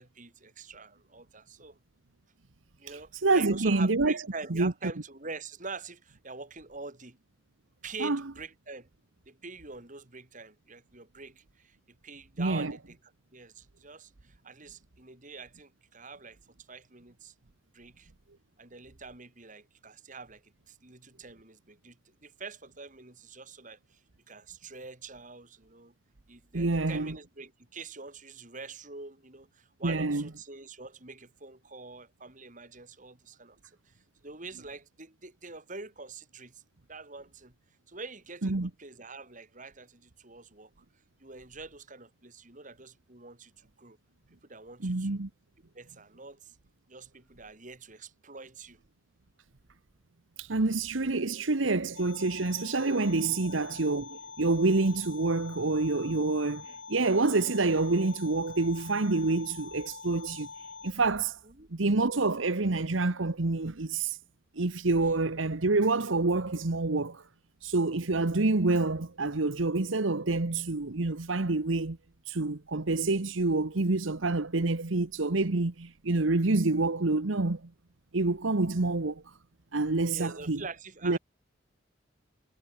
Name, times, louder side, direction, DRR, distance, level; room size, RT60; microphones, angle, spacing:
voice 1, 0.0-1.8 2.8-7.2 7.8-8.9 9.3-11.8 12.0-13.0 13.3-16.4 16.7-17.3 17.7-18.1 18.6-24.0 24.3-25.9 26.3-33.6 33.9-36.6 36.9-37.5 37.9-40.7 41.2-44.0 44.5-45.2 45.7-46.6 46.9-48.8 53.4-53.6 61.4-61.7 80.1-81.2, right 4 dB, 40° right, 3.5 m, -45 dB
voice 2, 3.2-4.2 4.5-4.7 8.0-8.2 12.4-12.8 26.5-27.1 29.8-30.3 38.4-38.7 44.8-45.3 50.4-60.5 60.8-61.4 61.7-64.2 64.6-67.2 67.6-72.0 72.3-77.6 78.1-79.2 79.7-80.6 81.0-81.2, right 3 dB, 85° right, 1.2 m, -27 dB
sound 1, 51.9-60.9, left 5 dB, 70° left, 1.9 m, -45 dB
head